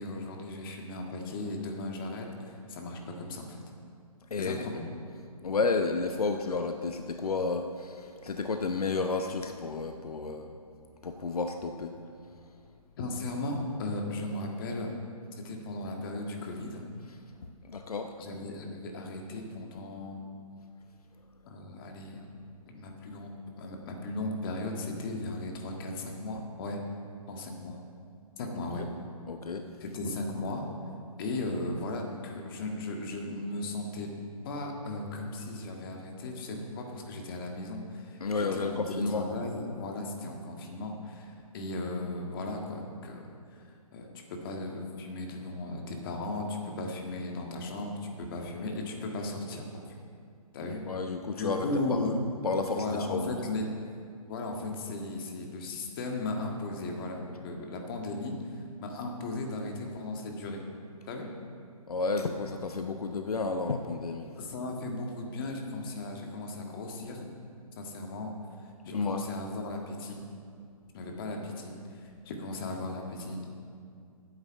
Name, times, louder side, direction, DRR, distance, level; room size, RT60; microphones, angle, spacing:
voice 1, 0.0-3.6 4.4-4.9 13.0-14.9 15.4-16.9 18.2-20.2 21.4-22.3 22.7-26.8 27.3-27.8 28.4-28.8 29.8-30.7 31.2-34.1 34.4-43.2 43.5-49.7 50.5-50.8 51.3-52.1 52.7-53.6 54.3-60.6 61.1-61.3 64.4-67.3 67.8-68.3 68.9-70.2 70.9-73.5, left 2 dB, 35° left, 1 dB, 1.7 m, -36 dB
voice 2, 4.3-4.7 5.4-10.5 11.0-11.9 17.6-18.1 29.3-29.7 38.2-39.2 50.9-52.2 52.4-53.4 61.9-64.4 68.9-69.3, left 4 dB, 80° left, 6 dB, 0.8 m, -31 dB
9.7 x 8.0 x 7.5 m, 2.3 s
hypercardioid pair, 145°, 19 cm